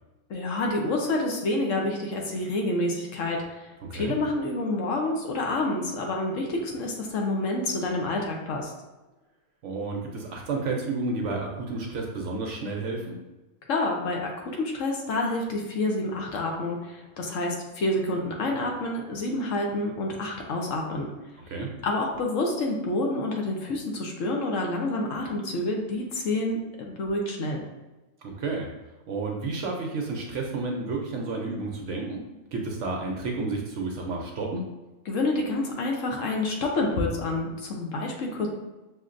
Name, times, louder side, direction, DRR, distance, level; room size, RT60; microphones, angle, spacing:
voice 1, 0.3-8.7 13.7-21.1 21.8-27.6 35.1-38.5, left 2 dB, 65° left, 0 dB, 1.0 m, -28 dB
voice 2, 3.8-4.1 9.6-13.2 21.5-21.7 28.2-28.7 29.1-32.2 32.5-34.7, right 3 dB, 65° right, 1 dB, 0.8 m, -31 dB
6.2 x 2.8 x 2.5 m, 1.1 s
omnidirectional pair, 1.6 m